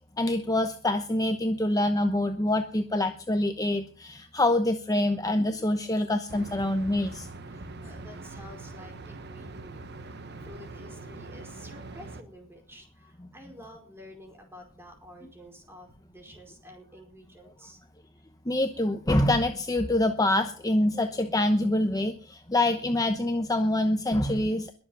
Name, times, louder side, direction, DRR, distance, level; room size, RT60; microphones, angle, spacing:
voice 1, 0.2-7.3 18.5-24.7, left 1 dB, 20° left, 6 dB, 0.9 m, -25 dB
sound 1, 6.3-12.2, right 3 dB, 55° right, 1.3 m, -43 dB
voice 2, 7.4-17.8, left 1 dB, 10° right, 3 dB, 4.8 m, -50 dB
22.0 x 7.6 x 5.6 m, 0.39 s
head